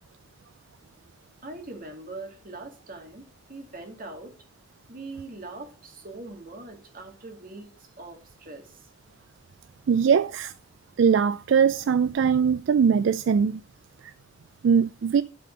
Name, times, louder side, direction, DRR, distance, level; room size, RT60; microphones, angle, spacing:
voice 1, 1.4-4.3 4.9-8.9, right 2 dB, 45° right, 2.1 m, -42 dB
voice 2, 9.9-10.5 11.0-13.6 14.6-15.2, right 6 dB, 65° right, 0.3 m, -21 dB
11.5 x 4.3 x 5.1 m
head